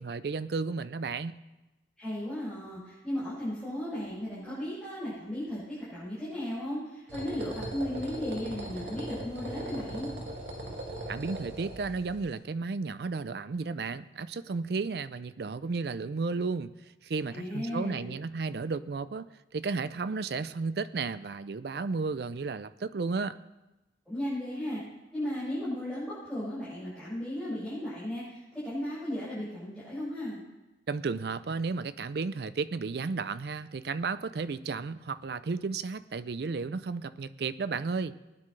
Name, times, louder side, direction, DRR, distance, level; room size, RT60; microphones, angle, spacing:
voice 1, 0.0-1.3 11.1-16.7 17.0-19.3 19.5-23.4 30.9-38.2, right 4 dB, 60° right, 14 dB, 0.4 m, -33 dB
voice 2, 2.0-10.1 17.3-18.1 24.1-24.8 25.1-30.4, left 1 dB, 5° left, -13 dB, 5.5 m, -35 dB
sound 1, 7.1-12.3, right 1 dB, 75° right, 2.2 m, -39 dB
20.0 x 9.8 x 3.3 m, 1.0 s
head